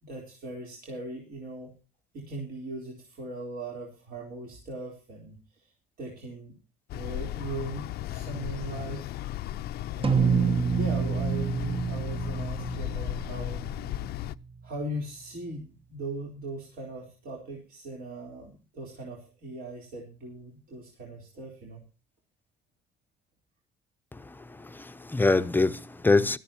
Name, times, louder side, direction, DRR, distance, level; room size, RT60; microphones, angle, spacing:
voice 1, 0.0-1.7 2.1-5.7 6.0-6.5 6.9-9.1 10.0-13.6 14.6-21.8, right 2 dB, 60° right, 4.0 m, -39 dB
sound 1, 6.9-14.3, left 13 dB, 70° left, 0.5 m, -35 dB
sound 2, 10.0-14.6, right 6 dB, 30° right, 0.9 m, -28 dB
voice 2, 24.1-26.4, left 3 dB, 10° left, 0.7 m, -25 dB
17.0 x 13.0 x 2.9 m
cardioid pair, 110°, 17 cm